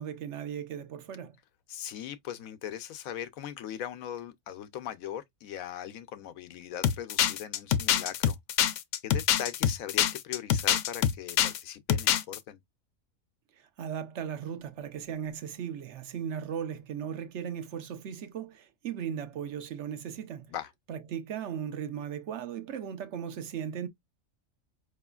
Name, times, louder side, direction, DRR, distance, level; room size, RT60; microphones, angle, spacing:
voice 1, 0.0-1.4 13.5-20.5 20.9-23.9, right 8 dB, 65° right, 1.0 m, -37 dB
voice 2, 1.7-8.4 9.0-12.6 20.5-20.7, left 10 dB, 90° left, 1.1 m, -39 dB
sound 1, 6.8-11.6 11.9-12.4, left 10 dB, 70° left, 0.9 m, -25 dB
4.9 x 3.0 x 2.3 m
omnidirectional pair, 1.4 m